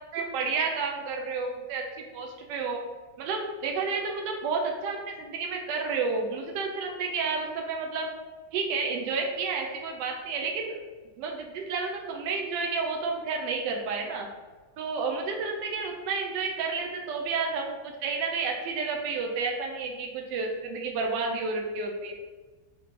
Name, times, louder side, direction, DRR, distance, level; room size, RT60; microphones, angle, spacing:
voice 1, 0.1-2.8 3.2-8.1 8.5-10.8 11.2-14.3 14.8-22.1, right 4 dB, 80° right, 2 dB, 1.2 m, -31 dB
3.7 x 3.1 x 3.6 m, 1.3 s
omnidirectional pair, 1.9 m